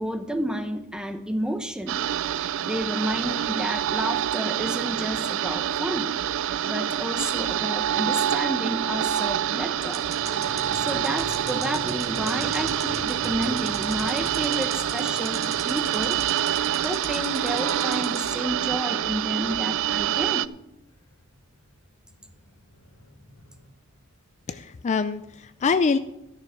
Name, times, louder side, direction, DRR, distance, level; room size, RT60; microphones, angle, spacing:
voice 1, 0.0-2.0 2.3-6.2 6.4-10.0 10.5-20.5, equal, 5° right, 8 dB, 0.9 m, -31 dB
sound 1, 1.9-20.5, right 10 dB, 60° right, 0.3 m, -27 dB
sound 2, 5.9-7.0 7.2-7.3 9.2-9.3 9.9-18.3, right 5 dB, 30° right, 1.5 m, -38 dB
sound 3, 9.1-19.5 21.6-21.7 21.9-23.7, left 1 dB, 85° left, 2.0 m, -44 dB
voice 2, 24.5-26.0, left 5 dB, 30° left, 11 dB, 0.4 m, -24 dB
13.0 x 6.7 x 6.9 m, 0.87 s
head